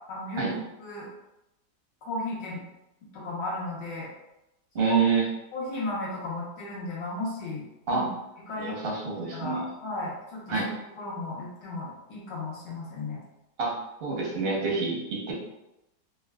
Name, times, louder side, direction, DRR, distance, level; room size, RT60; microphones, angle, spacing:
voice 1, 0.1-1.1 2.0-2.6 3.1-4.1 4.9-5.0 5.5-8.1 8.5-8.8 9.3-10.7 11.0-13.2, left 2 dB, 70° left, -6 dB, 1.5 m, -35 dB
voice 2, 4.7-5.2 7.9-8.0 8.6-9.6 10.5-10.7 13.6-13.7 14.0-15.3, right 5 dB, 55° right, -4 dB, 0.6 m, -27 dB
3.8 x 2.2 x 2.2 m, 0.91 s
omnidirectional pair, 2.1 m